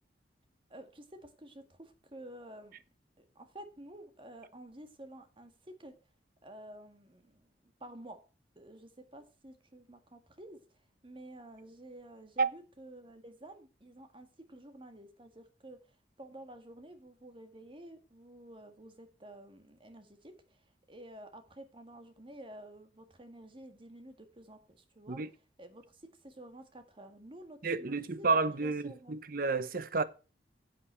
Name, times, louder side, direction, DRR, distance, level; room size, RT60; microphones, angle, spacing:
voice 1, 0.7-2.8 3.2-5.9 6.4-8.2 8.6-10.6 11.0-15.8 16.2-20.6 20.9-25.2 25.6-28.3 28.6-29.2, right 1 dB, 30° right, 1.8 m, -51 dB
voice 2, 27.6-30.0, right 4 dB, 50° right, 0.9 m, -30 dB
10.0 x 7.9 x 4.4 m
head